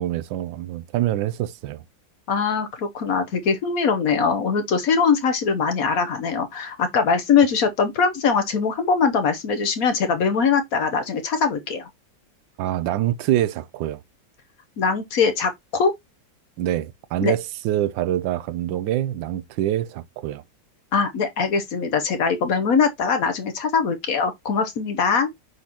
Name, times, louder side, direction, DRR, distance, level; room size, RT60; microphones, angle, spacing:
voice 1, 0.0-1.8 12.6-14.0 16.6-20.4, right 12 dB, 85° right, 1.3 m, -25 dB
voice 2, 2.3-11.9 14.8-15.9 17.2-17.3 20.9-25.3, left 5 dB, 60° left, 1.1 m, -22 dB
9.3 x 4.1 x 2.8 m
omnidirectional pair, 2.0 m